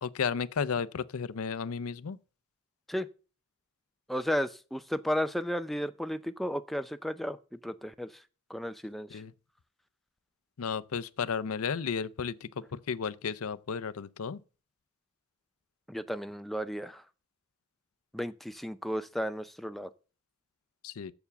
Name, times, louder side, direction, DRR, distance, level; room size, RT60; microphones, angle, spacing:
voice 1, 0.0-2.2 9.1-9.3 10.6-14.4 20.8-21.1, left 6 dB, 75° left, 0.5 m, -33 dB
voice 2, 4.1-8.2 8.5-9.2 15.9-17.0 18.1-19.9, equal, ahead, 0.4 m, -34 dB
7.0 x 7.0 x 6.8 m
head